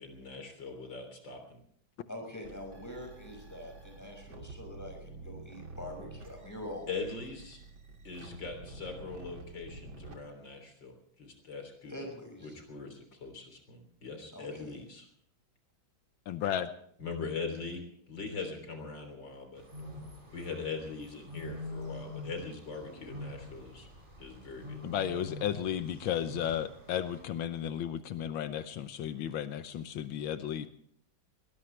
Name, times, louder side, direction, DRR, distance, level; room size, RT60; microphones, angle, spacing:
voice 1, 0.0-1.6 6.9-7.6 8.0-12.1 12.4-15.1 17.0-19.6 20.3-23.9 24.2-24.8, left 4 dB, 65° left, 5 dB, 4.1 m, -41 dB
voice 2, 2.1-7.1 11.9-12.6 14.3-14.8, left 1 dB, 10° left, 2 dB, 6.1 m, -44 dB
sound 1, 2.4-10.2, right 3 dB, 75° right, 3.5 m, -49 dB
voice 3, 16.3-16.7 24.8-30.7, left 10 dB, 85° left, 10 dB, 1.7 m, -34 dB
sound 2, 19.6-27.2, left 1 dB, 25° right, 4.7 m, -45 dB
22.0 x 19.0 x 3.3 m, 0.65 s
omnidirectional pair, 2.1 m